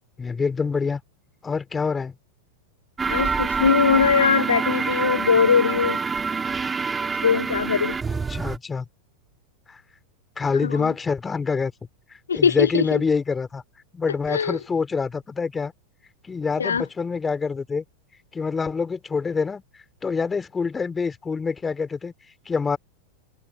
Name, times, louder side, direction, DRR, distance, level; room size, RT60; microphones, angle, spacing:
voice 1, 0.2-1.0 1.4-2.1 8.1-8.8 9.7-9.8 10.4-11.7 12.3-13.6 13.9-15.7 16.2-17.8 18.3-19.6 20.0-22.1 22.5-22.8, left 5 dB, 15° left, 2.9 m, -26 dB
sound 1, 3.0-8.6, right 5 dB, 15° right, 3.8 m, -26 dB
voice 2, 3.1-6.0 7.2-8.0 10.6-10.9 12.3-13.0 14.3-14.6 16.6-16.8, left 6 dB, 70° left, 1.1 m, -21 dB
figure-of-eight pair, 90°, 0 cm